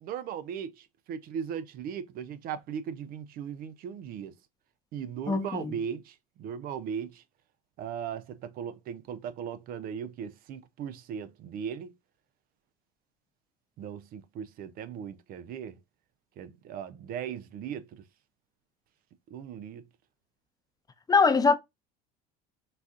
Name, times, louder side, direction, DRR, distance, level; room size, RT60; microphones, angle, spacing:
voice 1, 0.0-4.3 4.9-7.2 7.8-11.9 13.8-15.8 16.4-17.9 19.3-19.8, right 8 dB, 55° right, 0.5 m, -38 dB
voice 2, 5.3-5.8 21.1-21.5, left 4 dB, 20° left, 0.6 m, -22 dB
4.0 x 2.4 x 2.4 m
supercardioid pair, 85°, 18 cm